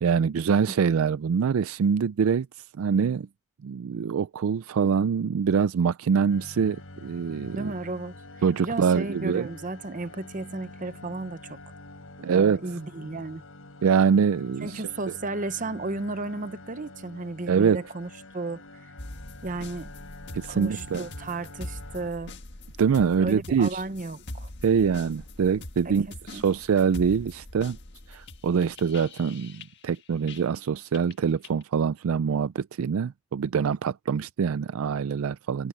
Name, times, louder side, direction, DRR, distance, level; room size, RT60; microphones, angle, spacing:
voice 1, 0.0-2.5 2.8-3.3 3.6-6.8 7.0-7.7 8.4-9.5 12.2-12.6 13.8-14.8 17.5-17.8 20.3-21.1 22.8-23.8 24.6-27.8 28.1-35.7, right 6 dB, 85° right, 0.4 m, -24 dB
sound 1, 6.3-22.1, left 2 dB, 85° left, 4.0 m, -46 dB
voice 2, 7.5-8.2 8.6-11.6 12.3-13.4 14.6-18.9 19.4-19.9 20.5-22.3 23.2-24.5 25.8-25.9 26.3-26.4, right 2 dB, 40° right, 0.9 m, -34 dB
sound 2, 19.0-30.6 30.9-31.6, left 2 dB, 55° left, 1.7 m, -43 dB
head